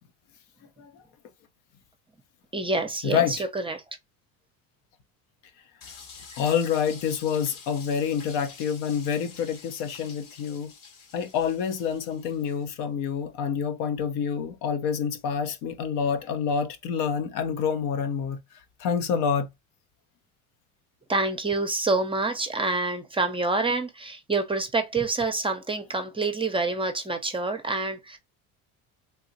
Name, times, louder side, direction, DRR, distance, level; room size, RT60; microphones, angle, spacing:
voice 1, 2.5-3.8 21.1-28.2, right 3 dB, 15° right, 0.6 m, -27 dB
voice 2, 3.0-3.4 5.9-6.0 6.4-10.7 11.1-18.4 18.8-19.5, left 7 dB, 70° left, 0.8 m, -27 dB
sound 1, 5.8-12.6, left 5 dB, 55° left, 1.1 m, -47 dB
3.4 x 2.7 x 2.7 m
supercardioid pair, 95°, 40 cm